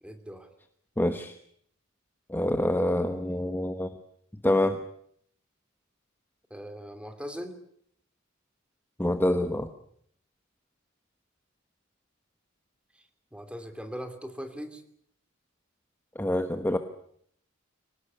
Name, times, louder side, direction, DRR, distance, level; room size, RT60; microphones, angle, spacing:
voice 1, 0.0-0.5 6.5-7.6 13.3-14.8, equal, 5° right, 9 dB, 2.8 m, -40 dB
voice 2, 1.0-1.4 2.3-3.9 4.4-4.8 9.0-9.7 16.1-16.8, left 1 dB, 10° left, 8 dB, 1.2 m, -26 dB
25.0 x 18.5 x 9.8 m, 0.67 s
head